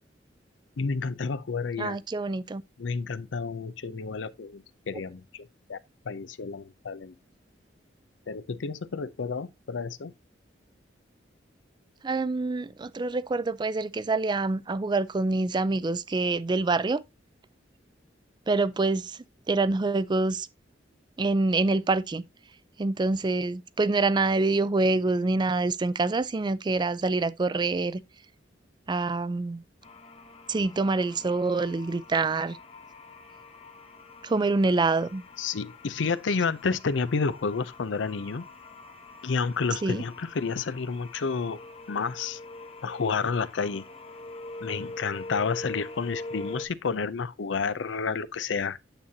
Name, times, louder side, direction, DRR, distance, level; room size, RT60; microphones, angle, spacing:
voice 1, 0.8-2.0 2.8-5.8 6.1-7.1 8.3-10.1 35.4-38.5 39.2-41.6 41.9-42.4 42.8-43.9 44.6-48.8, left 5 dB, 85° left, 0.6 m, -30 dB
voice 2, 1.8-2.6 12.0-17.0 18.5-19.2 19.5-20.5 21.2-22.2 22.8-28.0 28.9-29.6 30.5-32.6 34.2-35.2 39.8-40.0, right 3 dB, 25° right, 0.4 m, -26 dB
sound 1, 29.8-46.7, left 2 dB, 35° left, 0.9 m, -44 dB
8.9 x 7.3 x 2.7 m
head